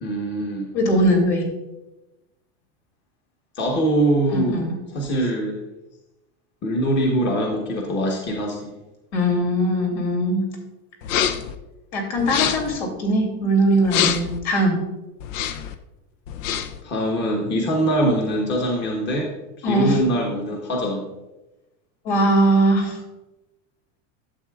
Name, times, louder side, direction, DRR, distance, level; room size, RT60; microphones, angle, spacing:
voice 1, 0.0-0.7 3.5-4.6 4.9-5.6 6.6-8.7 16.8-19.3 19.6-21.0, right 1 dB, 30° left, -1 dB, 1.2 m, -23 dB
voice 2, 0.7-1.5 4.3-4.7 9.1-10.4 11.9-14.7 19.6-20.0 22.0-23.0, right 1 dB, 65° left, 0 dB, 2.9 m, -20 dB
sound 1, 11.0-11.5 12.2-12.8 13.8-14.4 15.2-15.7 16.3-16.8, left 9 dB, 85° left, 0.7 m, -25 dB
11.5 x 7.5 x 2.4 m, 1.0 s
supercardioid pair, 140°, 37 cm